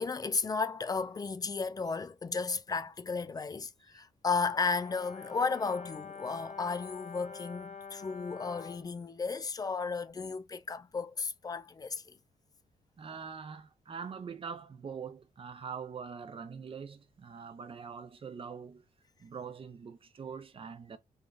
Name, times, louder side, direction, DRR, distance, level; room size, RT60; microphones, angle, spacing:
voice 1, 0.0-12.2, left 4 dB, 25° left, 0.4 m, -34 dB
Brass instrument, 4.5-8.9, left 5 dB, 50° left, 0.8 m, -46 dB
voice 2, 13.0-18.8 19.2-21.0, right 6 dB, 40° right, 0.7 m, -43 dB
3.5 x 2.3 x 2.5 m
cardioid pair, 90°, 15 cm